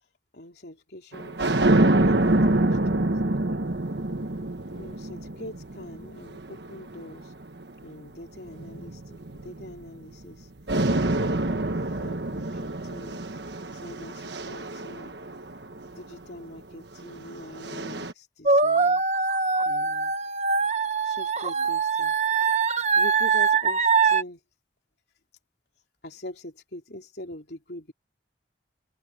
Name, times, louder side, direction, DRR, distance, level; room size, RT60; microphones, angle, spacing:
voice 1, 0.3-1.4 1.9-2.4 2.9-3.6 4.8-7.3 7.8-10.5 11.1-13.2 13.7-15.1 15.8-19.0 19.6-20.2 21.0-22.2 22.9-24.4 26.0-27.9, left 1 dB, 65° left, 4.0 m, -43 dB
sound 1, 1.1-7.7 8.5-10.3 10.7-16.0 17.0-18.1, right 2 dB, 70° right, 1.4 m, -26 dB
sound 2, 18.5-24.2, right 5 dB, 40° right, 1.1 m, -23 dB
head